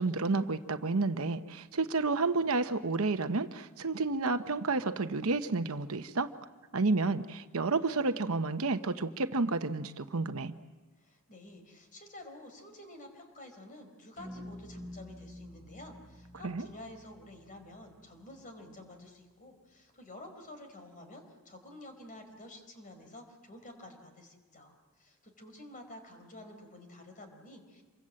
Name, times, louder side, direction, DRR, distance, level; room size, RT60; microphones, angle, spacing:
voice 1, 0.0-6.3 6.7-10.5 16.4-16.7, right 3 dB, 70° right, 9 dB, 1.0 m, -30 dB
voice 2, 11.0-27.8, left 1 dB, 40° left, 6 dB, 4.3 m, -50 dB
sound 1, 14.2-18.6, left 1 dB, 65° left, 6.2 m, -49 dB
27.0 x 24.0 x 7.6 m, 1.2 s
head